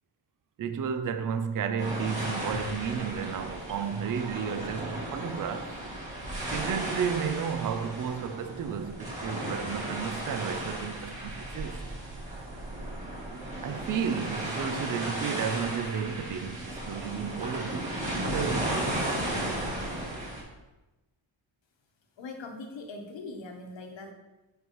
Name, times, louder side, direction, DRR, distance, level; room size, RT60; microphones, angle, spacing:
voice 1, 0.6-5.8 6.5-11.8 13.6-18.0 18.2-19.2, right 7 dB, 45° right, 0.4 m, -33 dB
sound 1, 1.8-20.4, right 1 dB, 15° right, 2.1 m, -35 dB
voice 2, 22.2-24.1, left 3 dB, 65° left, 1.1 m, -41 dB
8.1 x 4.6 x 3.1 m
wide cardioid pair, 115°, 48 cm